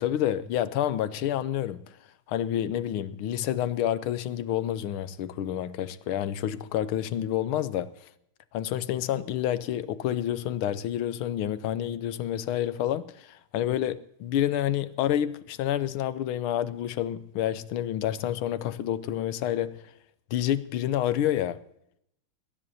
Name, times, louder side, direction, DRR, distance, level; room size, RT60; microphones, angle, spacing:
voice 1, 0.0-2.0 2.3-7.9 8.5-19.8 20.3-21.6, left 11 dB, 85° left, 1.6 m, -28 dB
20.0 x 18.5 x 2.8 m
omnidirectional pair, 2.3 m